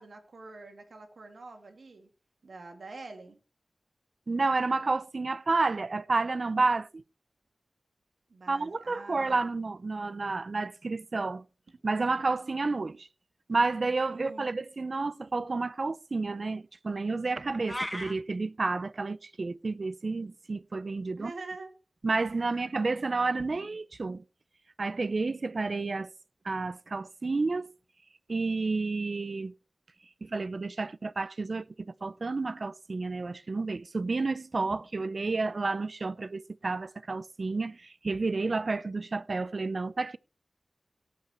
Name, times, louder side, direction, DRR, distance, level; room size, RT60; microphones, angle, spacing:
voice 1, 0.0-2.1 2.4-3.4 8.3-9.5 14.1-14.5 21.2-21.8, right 3 dB, 80° right, 2.4 m, -45 dB
voice 2, 4.3-7.0 8.5-11.4 11.8-13.1 13.5-21.3 22.0-24.2 24.8-26.1 26.4-27.7 28.3-29.5 30.2-40.2, right 3 dB, 60° right, 0.6 m, -30 dB
sound 1, 17.6-18.1, left 1 dB, 10° left, 2.7 m, -34 dB
17.5 x 5.8 x 4.3 m
cardioid pair, 45°, 0 cm